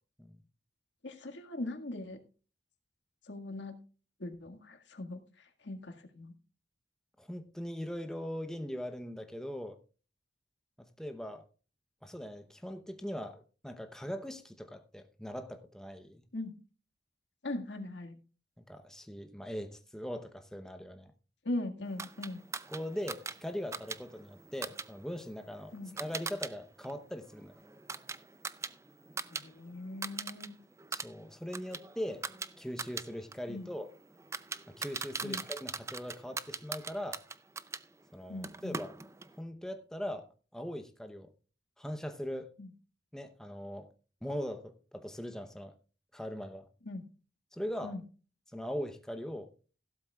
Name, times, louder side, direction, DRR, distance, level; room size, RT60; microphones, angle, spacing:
voice 1, 1.0-2.2 3.2-3.8 4.2-6.3 16.3-16.6 17.4-18.2 21.4-22.4 25.7-25.9 29.3-30.5 33.5-33.7 35.2-35.4 38.3-38.8 42.6-42.7 46.8-47.1 47.8-48.0, left 2 dB, 80° left, 1.9 m, -40 dB
voice 2, 7.2-9.8 10.8-11.4 12.0-16.2 18.6-21.1 22.7-27.7 30.9-32.3 32.6-33.9 34.7-37.2 38.1-38.9 39.4-41.3 41.8-42.5 43.1-43.9 44.2-45.8 46.1-46.7 47.5-47.9 48.5-49.5, equal, 5° left, 0.8 m, -40 dB
sound 1, 22.0-26.5 26.8-29.5 29.7-30.5 30.8-37.8 38.4-39.3, right 4 dB, 15° right, 0.5 m, -41 dB
15.5 x 12.5 x 2.4 m
head